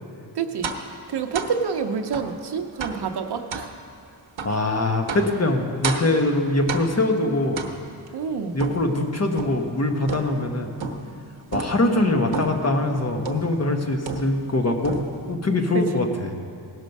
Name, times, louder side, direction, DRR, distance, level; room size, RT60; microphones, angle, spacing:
voice 1, 0.3-0.7 1.1-3.7 8.1-8.6 15.7-15.8, right 6 dB, 60° right, 6 dB, 0.8 m, -27 dB
sound 1, 0.6-0.9 1.3-1.6 2.1-2.4 2.8-3.1 3.5-3.7 4.4-4.6 5.1-5.4 5.8-6.2 6.7-7.1 7.6-8.1 8.6-9.7 10.1-10.5 10.8-11.2 11.5-11.8 12.3-12.7 13.3-13.6 14.1-14.6 14.8-15.3, right 4 dB, 85° right, 1.0 m, -31 dB
voice 2, 4.4-7.7 8.5-10.7 11.5-15.0 15.3-16.4, left 2 dB, 35° left, 3 dB, 1.1 m, -23 dB
17.0 x 6.3 x 5.3 m, 2.5 s
wide cardioid pair, 110°, 45 cm